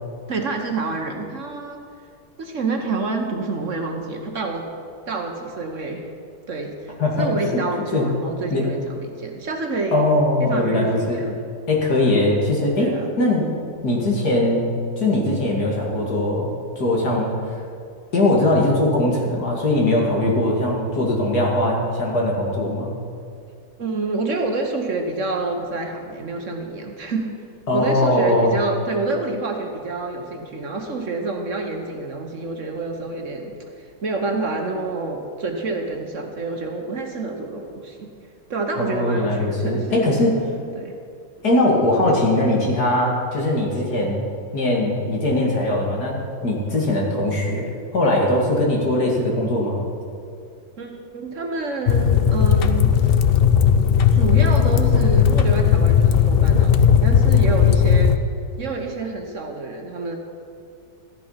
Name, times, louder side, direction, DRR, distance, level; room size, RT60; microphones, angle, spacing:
voice 1, 0.3-1.8 2.4-4.7 5.1-6.1 6.5-10.1 10.4-11.4 12.8-13.1 20.1-20.3 23.8-27.4 27.7-38.1 38.5-40.1 40.7-41.0 50.8-53.2 54.1-58.2 58.6-60.2, right 3 dB, 50° right, 3 dB, 1.4 m, -28 dB
voice 2, 9.9-11.2 11.7-12.9 13.2-13.5 13.8-14.7 15.0-17.3 18.1-22.9 27.7-28.5 38.8-40.4 41.4-44.2 44.5-46.2 46.4-49.8, left 1 dB, 70° left, -2 dB, 2.8 m, -20 dB
sound 1, 51.9-58.2, left 8 dB, 90° left, 0.5 m, -16 dB
14.0 x 11.0 x 5.7 m, 2.4 s
omnidirectional pair, 1.7 m